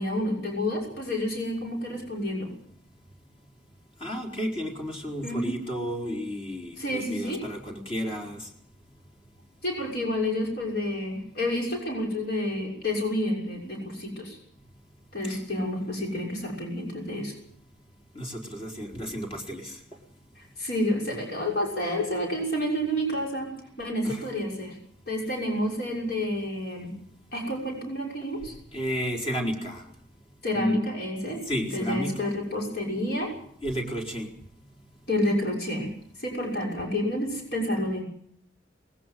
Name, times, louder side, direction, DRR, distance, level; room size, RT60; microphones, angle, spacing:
voice 1, 0.0-2.5 5.2-5.6 6.8-7.4 9.6-14.4 15.1-17.3 20.4-24.8 25.1-27.0 27.3-28.5 30.4-31.4 31.7-33.3 35.1-35.9 36.2-38.0, left 1 dB, 55° left, -1 dB, 6.3 m, -29 dB
voice 2, 4.0-8.5 15.2-15.4 18.1-19.8 24.0-24.2 28.7-29.8 30.5-30.8 31.5-32.3 33.6-34.3, equal, 30° left, 1 dB, 4.3 m, -32 dB
20.0 x 18.5 x 7.7 m, 0.65 s
head